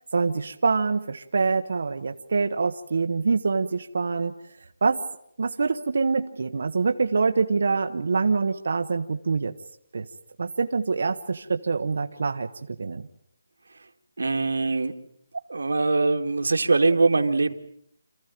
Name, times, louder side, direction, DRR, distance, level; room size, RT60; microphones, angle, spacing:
voice 1, 0.1-4.3 4.8-5.0 5.4-9.5 9.9-10.1 10.4-13.1, right 4 dB, 45° right, 6 dB, 1.0 m, -25 dB
voice 2, 14.2-15.0 15.5-17.5, right 3 dB, 85° right, 6 dB, 2.1 m, -22 dB
27.5 x 15.0 x 9.1 m, 0.72 s
hypercardioid pair, 180°, 0 cm